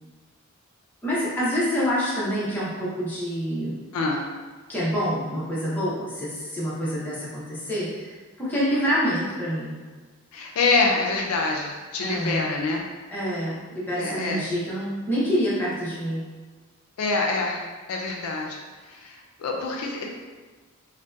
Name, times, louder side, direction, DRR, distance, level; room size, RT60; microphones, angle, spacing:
voice 1, 1.0-3.8 4.7-8.1 8.4-9.7 12.0-12.4 13.1-16.2, equal, 10° left, -9 dB, 0.6 m, -27 dB
voice 2, 10.3-12.8 14.0-14.4 17.0-17.6 17.9-18.6 18.9-20.1, left 3 dB, 75° left, 0 dB, 0.3 m, -26 dB
2.6 x 2.1 x 2.2 m, 1.4 s
head